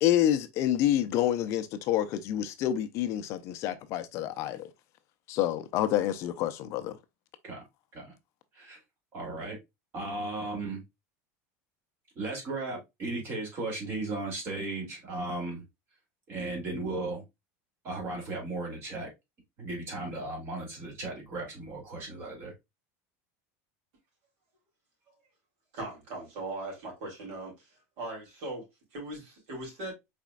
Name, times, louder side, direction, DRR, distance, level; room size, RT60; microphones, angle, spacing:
voice 1, 0.0-4.7 5.3-7.0, left 12 dB, 40° left, 0.5 m, -28 dB
voice 2, 9.1-9.6 9.9-10.8 12.1-15.6 16.3-17.2 17.8-19.1 19.6-22.5, right 2 dB, 30° right, 2.6 m, -36 dB
voice 3, 25.7-27.7 28.0-29.9, right 2 dB, 55° right, 3.4 m, -39 dB
4.9 x 4.2 x 2.3 m
supercardioid pair, 165°, 7 cm